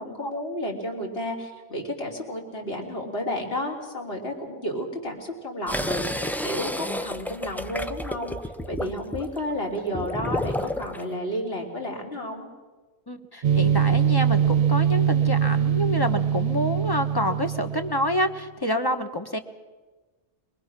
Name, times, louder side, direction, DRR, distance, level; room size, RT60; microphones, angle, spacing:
voice 1, 0.0-8.4 8.7-12.5, left 1 dB, 50° left, 0 dB, 3.5 m, -32 dB
sound 1, 5.7-11.0, left 1 dB, 5° left, 0.3 m, -31 dB
voice 2, 13.1-19.4, left 1 dB, 20° left, 7 dB, 1.2 m, -28 dB
sound 2, 13.4-18.3, right 8 dB, 55° right, 0.9 m, -23 dB
23.5 x 21.0 x 6.1 m, 1.3 s
omnidirectional pair, 1.3 m